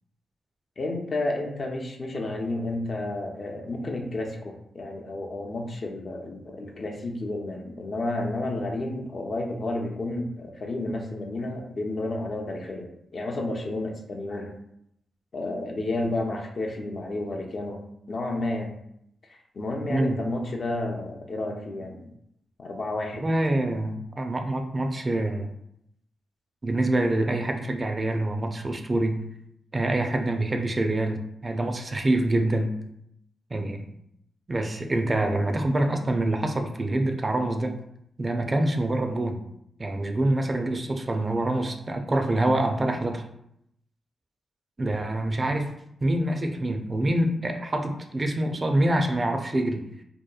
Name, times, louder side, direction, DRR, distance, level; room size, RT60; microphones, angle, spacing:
voice 1, 0.8-14.5 15.3-18.8 19.5-22.0 22.6-23.2, left 2 dB, 55° left, 1 dB, 0.5 m, -31 dB
voice 2, 23.1-25.5 26.6-29.2 29.7-32.7 33.5-33.9 34.5-37.8 38.2-39.4 39.8-43.3 44.8-45.7 46.0-49.8, right 1 dB, 35° right, 5 dB, 0.4 m, -26 dB
2.8 x 2.1 x 2.3 m, 0.76 s
supercardioid pair, 50°, 0 cm